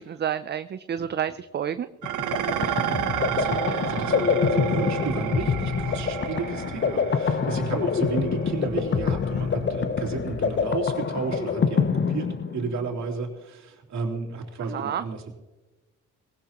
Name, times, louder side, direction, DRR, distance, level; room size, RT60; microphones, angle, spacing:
voice 1, 0.0-1.9 14.7-15.0, right 9 dB, 35° right, 12 dB, 0.5 m, -29 dB
sound 1, 2.0-12.9, left 6 dB, 40° left, 0.9 m, -26 dB
Dishes pots and pans, 2.0-10.8, right 11 dB, 90° right, 0.9 m, -32 dB
voice 2, 2.5-3.0 3.3-15.2, right 4 dB, 65° right, -1 dB, 3.3 m, -32 dB
19.0 x 18.0 x 3.0 m, 1.1 s
cardioid pair, 90°, 30 cm